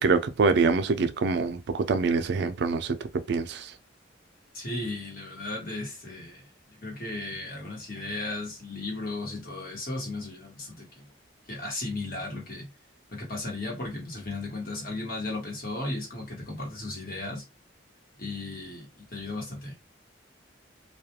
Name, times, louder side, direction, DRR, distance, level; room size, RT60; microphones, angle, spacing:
voice 1, 0.0-3.0 3.3-3.7, right 4 dB, 65° right, 0.4 m, -25 dB
voice 2, 4.5-11.1 11.5-12.7 13.1-17.4 18.2-19.8, left 2 dB, 50° left, 1.1 m, -35 dB
2.3 x 2.2 x 2.8 m
head